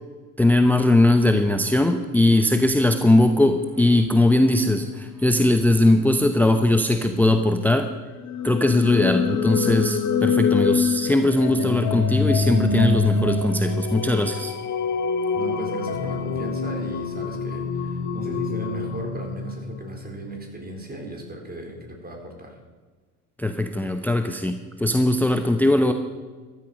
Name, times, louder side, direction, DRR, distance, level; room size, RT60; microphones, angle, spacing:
voice 1, 0.4-7.9 8.4-14.5 23.4-25.9, left 1 dB, 5° left, 7 dB, 0.9 m, -20 dB
sound 1, 0.8-7.2, left 1 dB, 45° right, 5.7 m, -43 dB
sound 2, 8.2-20.1, left 4 dB, 40° left, 1.8 m, -25 dB
voice 2, 15.3-22.6, right 1 dB, 20° right, 2 dB, 4.2 m, -36 dB
14.5 x 12.5 x 5.2 m, 1.4 s
hypercardioid pair, 75°, 46 cm